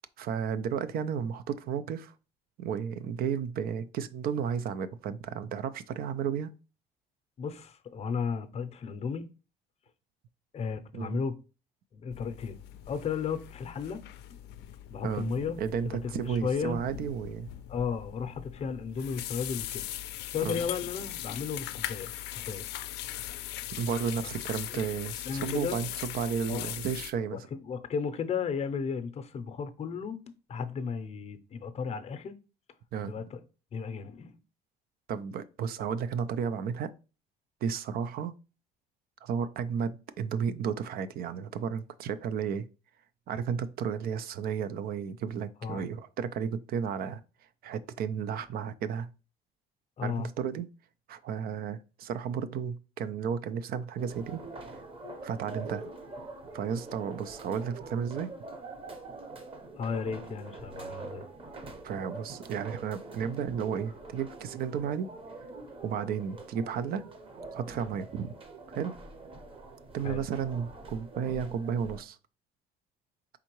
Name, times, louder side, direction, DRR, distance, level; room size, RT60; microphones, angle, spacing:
voice 1, 0.2-2.1 2.6-6.5 10.9-11.2 15.0-17.5 20.4-20.6 23.7-27.4 32.9-33.1 35.1-36.9 37.6-38.3 39.2-42.7 43.3-47.2 47.6-49.1 50.0-50.7 51.1-54.4 55.2-55.9 56.5-58.3 61.8-65.1 65.8-67.1 67.5-68.3 68.7-68.9 69.9-72.2, right 7 dB, 65° right, 0.4 m, -33 dB
voice 2, 7.4-9.3 10.5-11.4 11.9-12.6 12.9-14.0 14.9-15.6 15.8-16.8 17.7-19.8 20.3-22.7 24.2-24.3 24.7-24.8 25.2-25.8 26.5-26.7 27.3-30.2 30.5-32.3 33.0-33.4 33.7-34.4 45.6-45.9 50.0-50.3 59.7-61.2 70.0-70.2, left 6 dB, 40° left, 0.6 m, -34 dB
sound 1, 12.1-27.1, left 13 dB, 80° left, 0.4 m, -40 dB
sound 2, 54.0-72.0, right 3 dB, 30° right, 0.9 m, -44 dB
4.4 x 3.6 x 3.0 m
cardioid pair, 110°, 17 cm